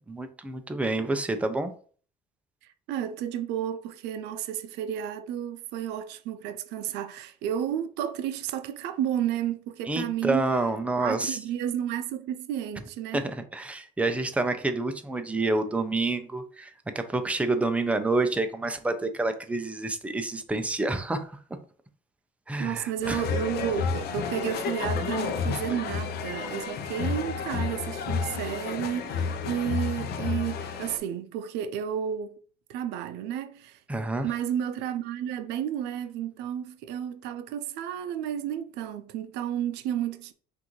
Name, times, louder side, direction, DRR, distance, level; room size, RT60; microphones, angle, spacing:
voice 1, 0.1-1.7 9.9-11.4 13.1-21.4 22.5-23.2 33.9-34.3, right 2 dB, 10° right, 0.5 m, -28 dB
voice 2, 2.9-10.5 11.0-13.2 22.6-32.4 32.7-33.8 34.2-40.3, right 10 dB, 90° right, 0.5 m, -32 dB
sound 1, 23.0-31.0, left 5 dB, 70° left, 0.7 m, -31 dB
6.0 x 2.6 x 3.0 m
cardioid pair, 110°, 17 cm